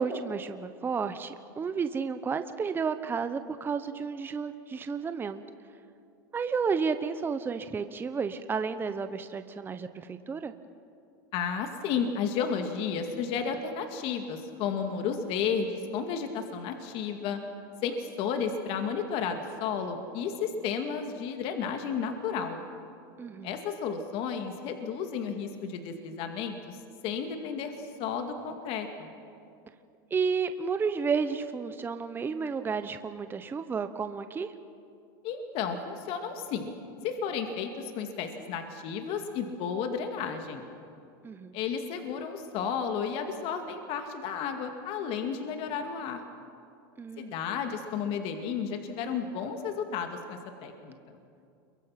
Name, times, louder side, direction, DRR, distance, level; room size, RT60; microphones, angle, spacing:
voice 1, 0.0-5.4 6.3-10.5 23.2-23.6 30.1-34.5 41.2-41.5 47.0-47.4, right 5 dB, 15° right, 10 dB, 0.9 m, -32 dB
voice 2, 11.3-17.4 17.8-22.6 23.4-26.8 27.0-29.1 35.2-36.7 37.0-40.6 41.5-46.2 47.2-50.9, left 6 dB, 50° left, 5 dB, 2.2 m, -32 dB
29.0 x 23.0 x 5.9 m, 2.5 s
supercardioid pair, 125°, 12 cm